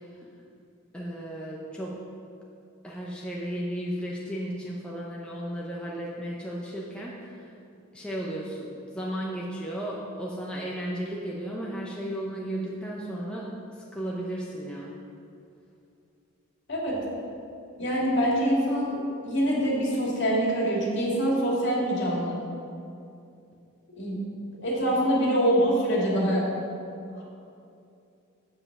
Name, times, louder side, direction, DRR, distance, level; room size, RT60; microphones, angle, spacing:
voice 1, 0.9-2.0 2.8-7.5 7.9-15.0, right 1 dB, 5° left, -4 dB, 0.7 m, -34 dB
voice 2, 16.7-17.0 17.8-22.4 23.9-24.2 24.6-26.4 27.2-27.3, equal, 55° left, -4 dB, 2.5 m, -25 dB
7.6 x 7.6 x 6.0 m, 2.6 s
head